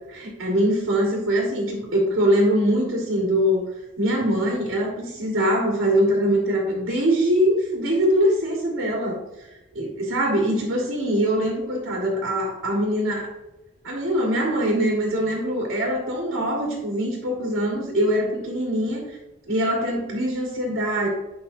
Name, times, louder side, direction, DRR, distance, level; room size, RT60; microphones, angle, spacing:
voice 1, 0.0-3.7 4.0-9.5 9.7-13.3 13.8-19.2 19.4-21.1, equal, 80° right, -2 dB, 1.8 m, -23 dB
9.4 x 5.2 x 2.7 m, 1.0 s
head